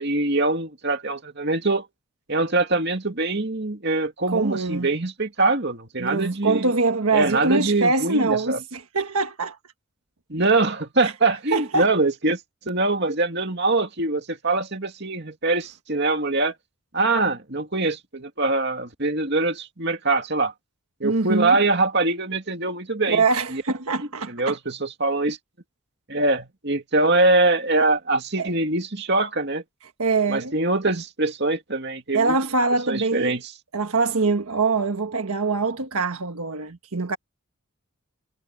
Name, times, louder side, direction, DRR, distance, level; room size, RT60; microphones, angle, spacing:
voice 1, 0.0-1.9 2.3-6.7 7.1-8.6 10.3-12.4 12.7-16.5 16.9-20.5 21.0-23.2 23.5-23.6 24.3-25.4 26.1-29.6 30.3-32.4 32.9-33.4, right 2 dB, 50° right, 2.5 m, -23 dB
voice 2, 4.3-4.9 6.0-9.6 11.0-11.1 11.5-11.9 21.0-21.6 23.1-24.6 28.4-28.5 30.0-30.5 32.1-33.4 33.7-37.2, right 3 dB, 85° right, 1.4 m, -23 dB
head